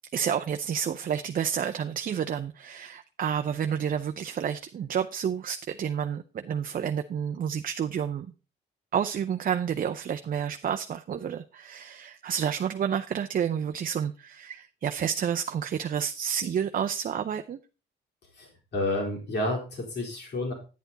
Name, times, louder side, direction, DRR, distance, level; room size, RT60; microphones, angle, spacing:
voice 1, 0.1-8.3 8.9-17.6, right 8 dB, 45° right, 0.6 m, -30 dB
voice 2, 18.4-20.5, left 1 dB, 60° left, 4.1 m, -30 dB
9.4 x 8.1 x 3.9 m
cardioid pair, 90°, 20 cm